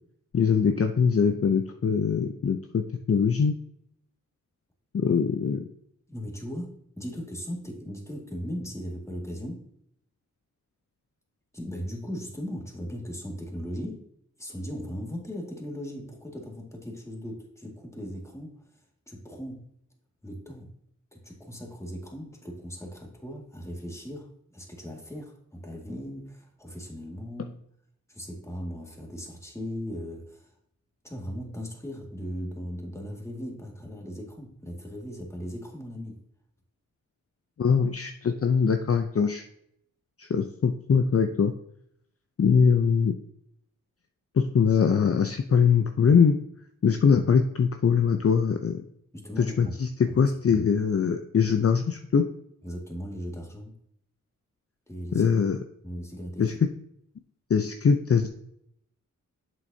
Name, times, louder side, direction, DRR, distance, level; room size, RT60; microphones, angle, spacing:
voice 1, 0.3-3.5 4.9-5.6 37.6-39.5 40.2-41.5 42.4-43.1 44.4-46.4 46.8-48.8 49.4-52.2 55.1-55.6 56.4-56.5 57.5-58.3, left 6 dB, 45° left, 6 dB, 0.6 m, -22 dB
voice 2, 6.1-9.7 11.5-14.1 14.4-18.6 19.1-19.7 20.2-20.7 21.1-27.6 28.1-30.5 31.0-36.2 49.1-49.8 50.1-50.2 50.5-50.7 52.6-53.8 54.9-55.3 55.8-56.5, equal, 10° left, 1 dB, 2.0 m, -38 dB
7.5 x 6.3 x 2.7 m, 0.72 s
cardioid pair, 45°, 33 cm